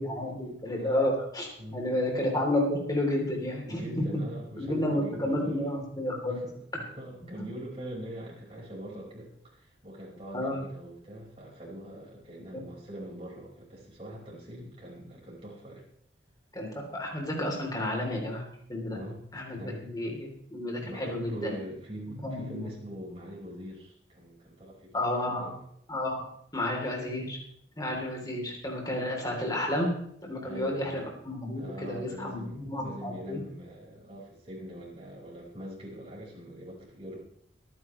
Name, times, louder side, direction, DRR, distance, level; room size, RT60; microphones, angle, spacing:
voice 1, 0.0-4.0 4.6-6.4 10.3-10.6 12.5-12.6 16.5-18.4 18.7-19.0 19.3-21.5 22.2-22.7 24.9-25.5 25.9-26.2 26.5-27.4 27.8-29.9 30.2-33.4, left 1 dB, 20° left, 0 dB, 3.3 m, -31 dB
voice 2, 3.7-5.8 6.3-6.5 6.8-15.9 18.9-19.2 19.5-19.8 20.8-25.6 30.4-31.0 31.5-37.2, equal, 30° right, -3 dB, 5.1 m, -43 dB
24.0 x 9.9 x 3.2 m, 0.69 s
head